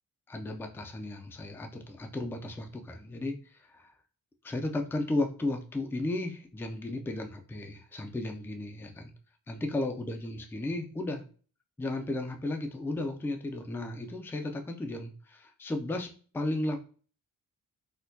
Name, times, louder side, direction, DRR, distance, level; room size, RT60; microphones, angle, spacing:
voice 1, 0.3-3.9 4.4-9.1 9.5-11.2 11.8-16.1 16.3-16.8, left 2 dB, 5° left, 5 dB, 0.3 m, -34 dB
4.2 x 2.2 x 2.6 m, 0.39 s
wide cardioid pair, 125°, 37 cm